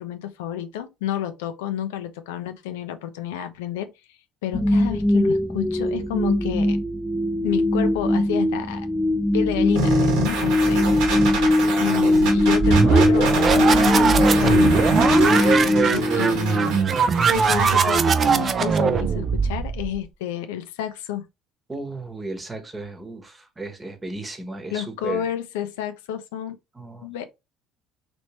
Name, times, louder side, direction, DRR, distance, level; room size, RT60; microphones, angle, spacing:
voice 1, 0.0-3.9 4.4-6.8 7.4-8.9 9.3-11.1 11.8-16.8 17.3-21.3 24.7-26.6 27.0-27.2, left 10 dB, 80° left, 0.4 m, -30 dB
sound 1, 4.5-16.7, left 1 dB, 5° left, 0.8 m, -21 dB
sound 2, 9.8-17.8, right 4 dB, 75° right, 1.3 m, -27 dB
voice 2, 11.2-12.4 21.7-25.3 26.7-27.1, right 2 dB, 20° right, 1.1 m, -35 dB
sound 3, 12.3-20.0, right 5 dB, 40° right, 0.4 m, -20 dB
3.0 x 3.0 x 3.0 m
hypercardioid pair, 65°, 0 cm